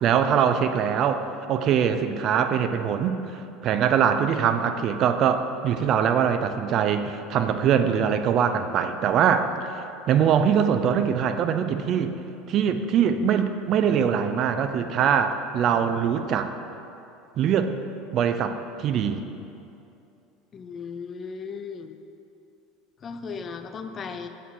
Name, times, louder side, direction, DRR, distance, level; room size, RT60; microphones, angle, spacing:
voice 1, 0.0-3.2 3.6-12.1 12.5-16.5 17.4-17.7 18.1-19.2, right 8 dB, 50° right, 8 dB, 0.3 m, -23 dB
voice 2, 20.5-22.0 23.0-24.3, left 5 dB, 35° left, 8 dB, 0.3 m, -36 dB
7.9 x 3.1 x 4.2 m, 2.7 s
hypercardioid pair, 75°, 0 cm